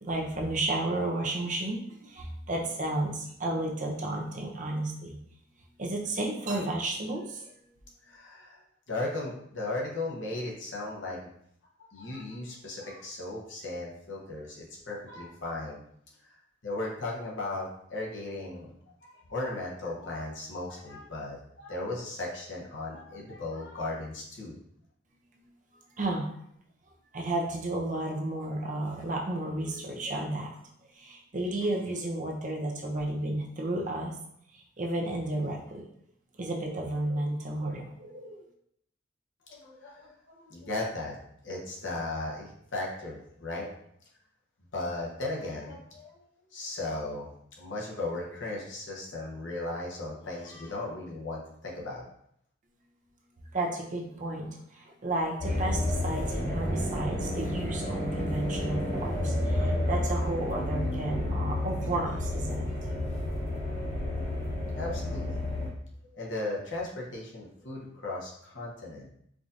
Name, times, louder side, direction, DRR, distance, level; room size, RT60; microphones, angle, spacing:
voice 1, 0.0-5.2 5.8-7.5 26.0-26.3 27.1-30.5 31.0-34.2 34.8-35.8 36.4-38.4 53.5-62.6, right 1 dB, 40° right, 0 dB, 0.6 m, -32 dB
voice 2, 8.0-8.6 8.9-11.2 11.9-15.8 16.2-18.7 19.0-24.6 39.5-41.2 41.4-43.7 44.7-47.3 47.6-52.1 64.7-65.8 66.1-69.1, left 2 dB, 70° left, -3 dB, 1.0 m, -36 dB
sound 1, 55.4-65.7, left 1 dB, 35° left, 1.0 m, -30 dB
4.7 x 2.6 x 2.5 m, 0.70 s
head